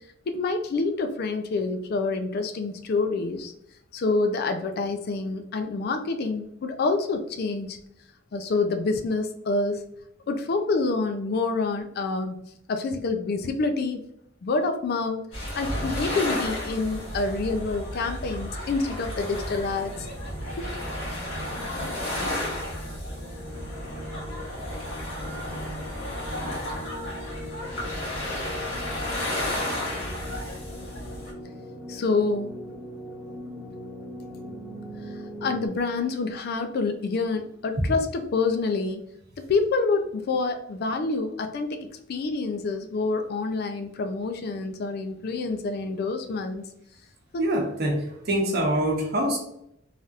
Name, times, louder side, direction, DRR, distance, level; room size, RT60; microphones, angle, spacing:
voice 1, 0.3-3.5 3.9-7.8 8.3-9.8 10.3-12.3 12.7-14.0 14.4-15.2 15.6-20.1 20.6-20.7 31.9-32.6 35.4-39.0 39.4-46.7, left 3 dB, 55° left, 7 dB, 0.4 m, -27 dB
sound 1, 15.3-31.3, left 1 dB, 75° left, 1.4 m, -33 dB
sound 2, 19.5-35.7, equal, 10° right, 0.6 m, -40 dB
voice 2, 47.4-49.4, right 1 dB, 55° right, 0 dB, 0.8 m, -25 dB
3.3 x 2.7 x 2.4 m, 0.75 s
head